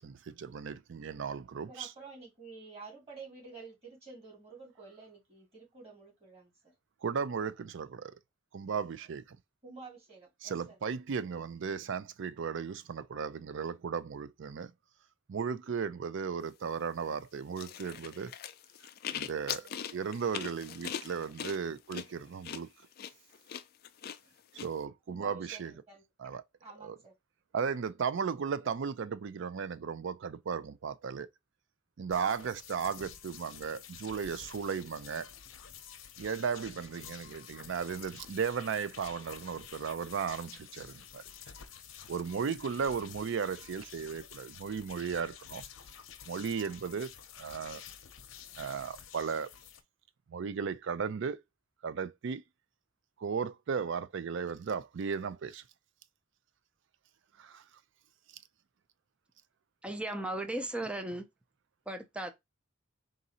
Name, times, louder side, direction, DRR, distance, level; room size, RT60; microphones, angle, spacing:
voice 1, 0.0-1.9 7.0-8.1 8.5-9.4 10.4-14.7 15.3-18.3 19.1-22.7 24.5-25.7 26.2-26.4 26.8-27.0 27.5-31.3 32.0-35.3 36.2-41.2 42.1-45.6 46.3-47.1 47.4-47.8 48.6-49.5 50.3-51.4 51.8-52.4 53.2-55.6 57.4-57.6, right 6 dB, 65° right, 0.4 m, -35 dB
voice 2, 1.7-6.7 9.6-10.8 19.6-19.7 25.1-27.1, right 4 dB, 30° right, 2.3 m, -50 dB
sound 1, 17.6-24.7, left 8 dB, 50° left, 0.4 m, -41 dB
sound 2, 32.1-49.8, left 8 dB, 85° left, 0.6 m, -50 dB
voice 3, 59.8-61.3 61.9-62.3, right 1 dB, 5° right, 0.5 m, -36 dB
3.8 x 2.6 x 4.1 m
head